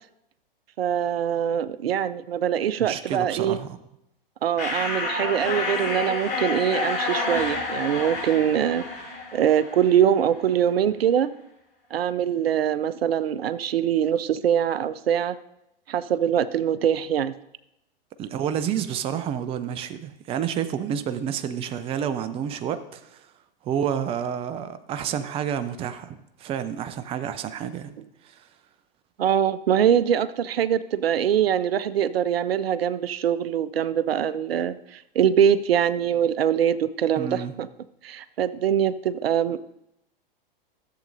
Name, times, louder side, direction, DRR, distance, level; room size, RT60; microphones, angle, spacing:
voice 1, 0.8-3.6 4.4-8.9 9.3-11.3 11.9-15.4 15.9-17.3 29.2-37.7 38.0-39.6, right 9 dB, 80° right, 0.5 m, -23 dB
voice 2, 2.8-3.8 18.2-23.2 23.6-27.9 28.2-28.4 37.2-37.5, right 9 dB, 20° right, 0.5 m, -29 dB
sound 1, 4.6-10.1, left 3 dB, 30° left, 3.5 m, -29 dB
14.0 x 7.5 x 2.6 m
hypercardioid pair, 115°, 29 cm